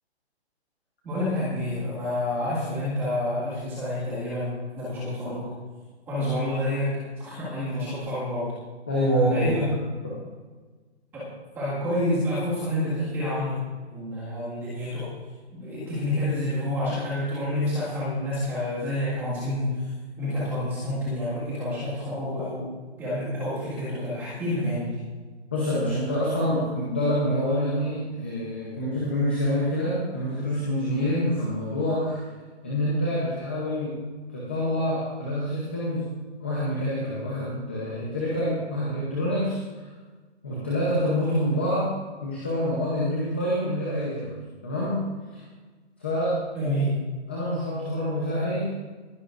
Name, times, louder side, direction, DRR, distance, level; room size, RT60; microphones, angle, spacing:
voice 1, 1.0-5.5 6.1-8.6 9.3-9.8 11.1-15.1 15.5-19.9 20.2-22.7 23.0-25.0 46.5-46.9, left 1 dB, 5° right, -10 dB, 1.8 m, -28 dB
voice 2, 8.9-9.6 25.5-32.2 32.6-34.0 34.3-36.1 36.4-39.9 40.4-41.9 42.2-44.3 44.6-45.0 45.3-45.4 46.0-46.4 47.3-48.8, equal, 10° left, -6 dB, 0.7 m, -26 dB
20.0 x 11.0 x 2.5 m, 1.4 s
hypercardioid pair, 175°, 34 cm